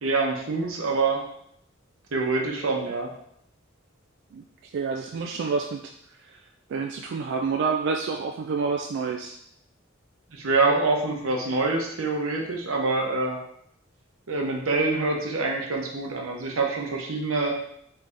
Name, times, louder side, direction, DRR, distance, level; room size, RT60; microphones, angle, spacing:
voice 1, 0.0-1.2 2.1-3.1 10.3-13.4 14.3-17.5, right 3 dB, 90° right, 1 dB, 0.9 m, -25 dB
voice 2, 4.3-5.9 6.2-6.4 6.7-9.4, right 5 dB, 60° right, 3 dB, 0.3 m, -28 dB
3.9 x 3.3 x 3.5 m, 0.71 s
head